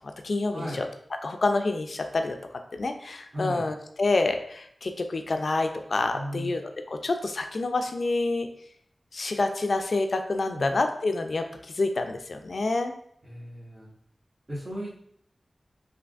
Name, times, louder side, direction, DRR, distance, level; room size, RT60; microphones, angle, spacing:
voice 1, 0.2-0.9 1.2-2.4 2.8-8.5 9.1-11.5 11.7-12.9, left 3 dB, 70° left, 6 dB, 0.3 m, -27 dB
voice 2, 3.3-3.7 6.1-6.5 10.5-10.7 13.2-13.9 14.5-15.0, equal, 40° right, -10 dB, 1.3 m, -35 dB
3.4 x 2.5 x 2.4 m, 0.68 s
cardioid pair, 40°, 0 cm